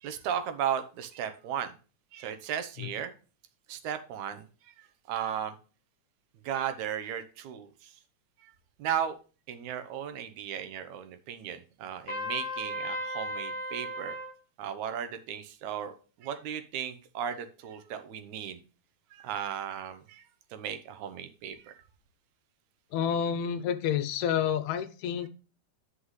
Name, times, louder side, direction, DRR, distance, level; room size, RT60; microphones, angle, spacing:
voice 1, 0.0-1.7 2.1-3.1 3.7-5.5 6.4-7.9 8.4-8.5 8.8-9.2 9.5-14.2 14.6-15.9 16.2-18.6 19.1-20.3 20.5-21.7, right 9 dB, 75° right, 9 dB, 2.2 m, -35 dB
Trumpet, 12.1-14.3, left 1 dB, 30° left, 3.5 m, -35 dB
voice 2, 22.9-25.3, left 8 dB, 75° left, 12 dB, 1.9 m, -29 dB
9.6 x 6.0 x 3.2 m, 0.35 s
omnidirectional pair, 3.4 m